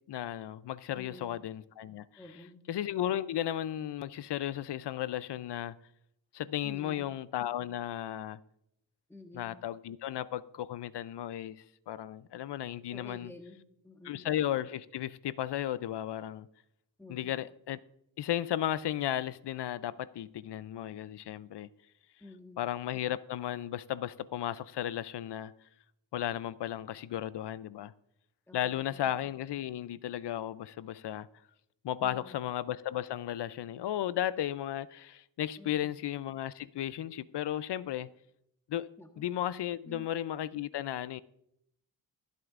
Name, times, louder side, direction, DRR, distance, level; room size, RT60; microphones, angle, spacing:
voice 1, 0.1-2.1 2.7-5.8 6.3-8.4 9.3-13.3 14.1-16.5 17.1-17.8 18.2-21.7 22.6-25.5 26.1-27.9 28.5-31.3 31.8-38.1 38.7-38.9 39.2-41.2, left 12 dB, 65° left, 0.5 m, -35 dB
voice 2, 0.9-1.4 2.2-2.6 6.6-7.1 9.1-9.7 12.9-14.3 17.0-17.4 22.2-22.7 28.5-29.1 32.0-32.4 35.6-35.9 39.0-39.3 39.8-40.1, left 1 dB, 5° left, 1.2 m, -51 dB
23.0 x 8.0 x 2.5 m
cardioid pair, 85°, 45 cm